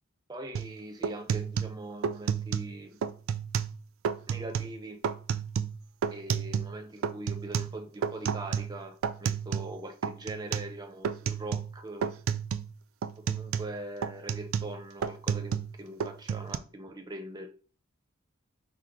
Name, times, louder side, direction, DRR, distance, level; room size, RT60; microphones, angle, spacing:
voice 1, 0.3-3.0 4.3-5.0 6.1-12.2 13.3-17.5, right 1 dB, 20° right, 0.6 m, -42 dB
sound 1, 0.6-0.7 1.0-2.7 3.0-3.8 4.1-4.8 5.0-6.8 7.0-9.8 10.0-10.7 11.0-11.8 12.0-12.7 13.0-15.7 16.0-16.6, right 7 dB, 70° right, 0.3 m, -31 dB
4.5 x 2.0 x 3.8 m
head